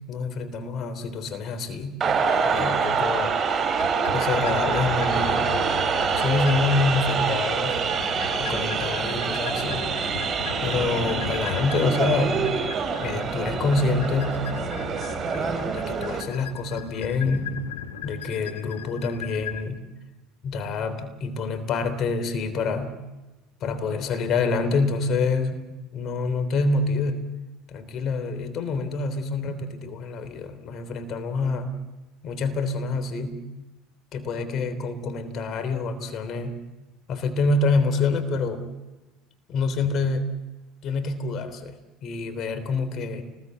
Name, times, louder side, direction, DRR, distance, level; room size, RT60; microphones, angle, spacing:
voice 1, 0.1-2.1 2.4-3.4 4.1-5.6 6.2-7.8 8.4-9.9 10.6-12.5 13.0-14.5 15.3-17.6 18.0-19.9 20.4-23.0 23.6-27.3 27.7-31.7 32.2-33.5 34.1-36.6 37.1-38.7 39.5-40.4 40.8-43.2, left 3 dB, 45° left, 10 dB, 3.5 m, -27 dB
sound 1, 2.0-16.2, right 5 dB, 35° right, 5.1 m, -26 dB
sound 2, 3.8-19.6, left 8 dB, 75° left, 1.6 m, -37 dB
29.5 x 20.5 x 8.4 m, 1.1 s
figure-of-eight pair, 70°, 0 cm